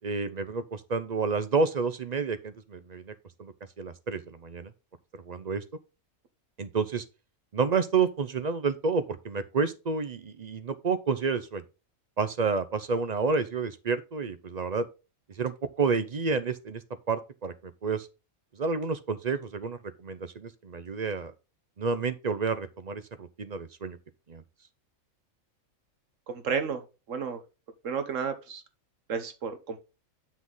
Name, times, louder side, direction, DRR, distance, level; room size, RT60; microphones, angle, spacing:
voice 1, 0.0-3.1 3.4-4.7 5.3-5.6 6.6-7.0 7.5-11.6 12.2-14.9 15.4-16.8 17.1-18.1 18.6-21.3 21.8-24.0 24.3-24.4, right 4 dB, 40° right, 0.6 m, -30 dB
voice 2, 26.3-27.4 27.8-28.6 29.1-29.8, right 6 dB, 65° right, 1.4 m, -32 dB
7.3 x 6.0 x 3.9 m
omnidirectional pair, 1.4 m